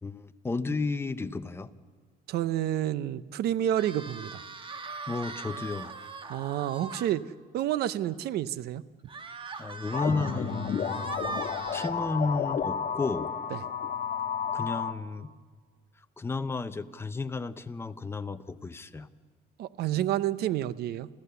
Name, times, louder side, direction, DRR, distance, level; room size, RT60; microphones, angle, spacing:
voice 1, 0.0-1.7 5.1-5.9 9.6-10.7 11.7-13.3 14.5-15.4 16.2-19.1, left 3 dB, 15° left, 10 dB, 0.8 m, -32 dB
voice 2, 2.3-4.4 6.3-7.2 7.5-8.8 13.5-13.6 19.6-21.1, right 12 dB, 70° right, 16 dB, 0.7 m, -29 dB
sound 1, 3.7-7.1 7.6-7.7 8.0-8.1 9.1-11.9, right 4 dB, 30° right, 1.3 m, -40 dB
sound 2, 9.9-14.9, left 7 dB, 50° left, 1.3 m, -31 dB
29.0 x 15.0 x 7.0 m, 1.5 s
cardioid pair, 110°, 17 cm